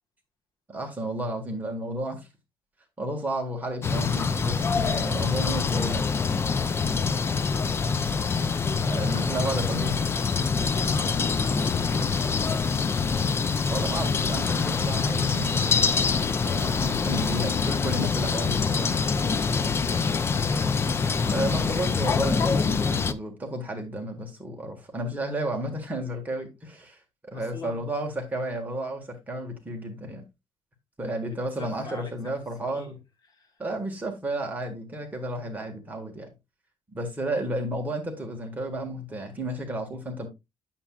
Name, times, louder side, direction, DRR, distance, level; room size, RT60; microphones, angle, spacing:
voice 1, 0.7-2.3 3.0-6.0 8.8-10.0 12.0-12.2 13.7-15.8 16.4-18.9 21.3-27.0 27.2-30.2 31.0-33.0 33.6-36.3 36.9-40.3, right 1 dB, 15° right, 1.6 m, -32 dB
sound 1, 3.8-23.1, left 5 dB, 25° left, 0.4 m, -25 dB
voice 2, 8.4-12.8 16.5-21.7 27.3-27.9 31.3-32.4 32.6-33.6, left 3 dB, 40° left, 1.3 m, -46 dB
8.5 x 7.2 x 2.3 m
cardioid pair, 150°, 10 cm